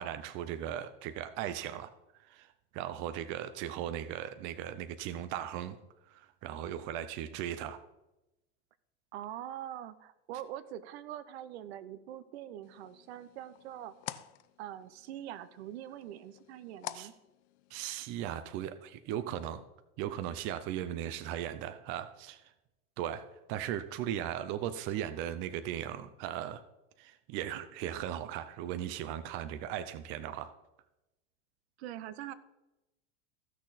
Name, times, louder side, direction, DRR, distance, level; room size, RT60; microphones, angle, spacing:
voice 1, 0.0-1.9 2.3-2.5 2.7-5.8 6.4-7.8 16.9-17.1 17.7-19.6 20.0-22.4 23.0-23.2 23.5-26.6 27.0-30.5, right 11 dB, 35° right, 11 dB, 0.6 m, -37 dB
voice 2, 9.1-13.9 14.6-17.1 31.8-32.3, right 12 dB, 70° right, 15 dB, 0.9 m, -43 dB
sound 1, 12.6-18.0, left 14 dB, 80° left, 0.7 m, -49 dB
15.5 x 6.4 x 4.1 m, 0.95 s
supercardioid pair, 155°, 33 cm